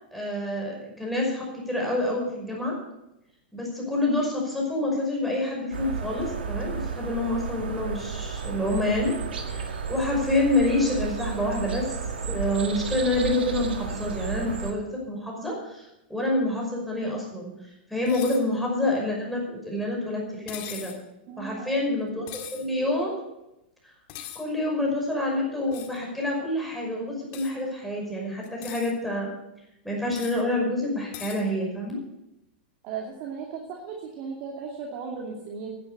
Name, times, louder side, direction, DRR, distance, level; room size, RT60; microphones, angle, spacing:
voice 1, 0.1-2.7 3.5-9.1 9.5-11.8 12.3-17.5 17.9-20.9 21.4-22.2 22.5-23.2 24.3-29.3 29.8-32.0, left 1 dB, ahead, -3 dB, 5.6 m, -27 dB
sound 1, 5.7-14.7, right 5 dB, 85° right, 1.9 m, -33 dB
sound 2, 18.1-18.4 20.5-21.0 22.3-22.7 24.1-24.4 25.7-26.0 27.3-27.5 28.4-28.9 30.1-30.4 31.1-31.4, left 11 dB, 50° left, 1.9 m, -40 dB
voice 2, 21.3-21.8 32.8-35.8, right 5 dB, 45° right, 0 dB, 2.5 m, -36 dB
11.0 x 10.5 x 6.8 m, 0.88 s
hypercardioid pair, 125°, 5 cm